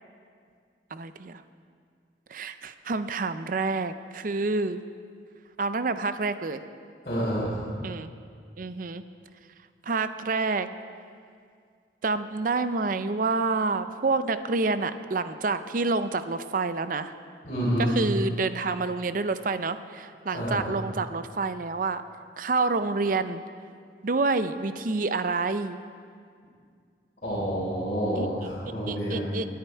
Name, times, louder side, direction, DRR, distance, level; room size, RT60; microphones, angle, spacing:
voice 1, 0.9-1.4 2.3-4.8 5.6-6.6 7.8-8.1 8.6-9.0 9.9-10.7 12.0-17.1 17.8-22.0 22.4-23.4 24.0-25.8 28.2-28.3 28.9-29.5, right 3 dB, 50° right, 11 dB, 0.6 m, -28 dB
voice 2, 7.0-7.7 17.4-17.9 20.3-20.6 27.2-29.3, equal, 45° left, -11 dB, 4.1 m, -28 dB
19.5 x 10.5 x 4.5 m, 2.2 s
head